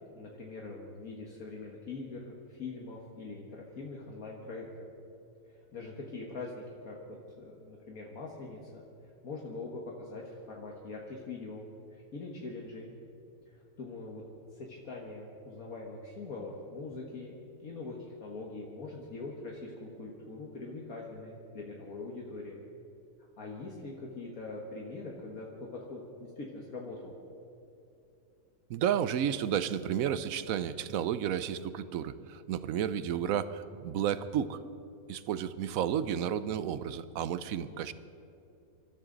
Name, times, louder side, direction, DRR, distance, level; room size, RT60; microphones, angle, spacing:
voice 1, 0.1-4.7 5.5-11.6 11.9-12.9 13.5-14.2 14.5-22.6 23.4-27.1, left 3 dB, 70° left, -1 dB, 1.9 m, -43 dB
voice 2, 28.7-34.6 35.1-37.9, right 9 dB, 70° right, 14 dB, 1.0 m, -32 dB
26.0 x 13.0 x 3.9 m, 2.7 s
omnidirectional pair, 1.6 m